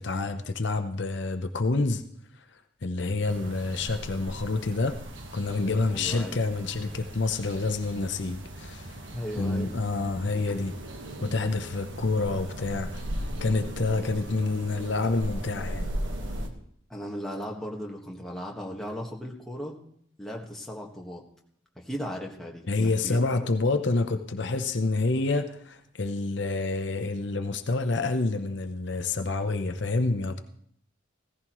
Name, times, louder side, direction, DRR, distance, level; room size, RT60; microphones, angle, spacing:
voice 1, 0.0-2.0 2.4-5.0 5.3-9.0 9.4-10.8 11.2-13.0 13.4-15.9 22.7-30.4, left 3 dB, 65° left, 8 dB, 0.8 m, -28 dB
sound 1, 3.3-16.5, right 1 dB, 75° right, 1.5 m, -38 dB
voice 2, 5.9-6.4 9.1-9.7 10.5-10.6 16.9-19.8 20.2-21.2 21.7-23.2, equal, ahead, -1 dB, 1.5 m, -37 dB
16.0 x 14.5 x 3.1 m, 0.66 s
head